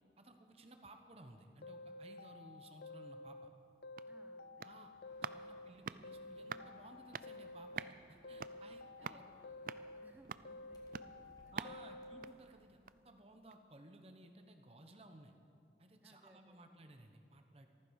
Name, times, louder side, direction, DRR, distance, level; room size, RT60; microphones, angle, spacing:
voice 1, 0.2-3.5 4.6-4.9 5.2-9.2 11.5-15.3 15.8-17.7, right 1 dB, 35° right, 5 dB, 1.0 m, -58 dB
sound 1, 1.6-3.5 3.8-5.7 6.0-7.9 8.2-10.1 10.4-12.3, left 2 dB, 60° left, 0.5 m, -52 dB
sound 2, 3.6-13.2 13.5-13.6, right 6 dB, 50° right, 0.4 m, -50 dB
voice 2, 4.1-5.0 8.8-12.1 16.0-16.9, right 1 dB, 10° right, 3 dB, 1.0 m, -67 dB
sound 3, 5.0-13.0, equal, 20° left, 1.8 m, -71 dB
14.5 x 14.5 x 6.4 m, 2.6 s
head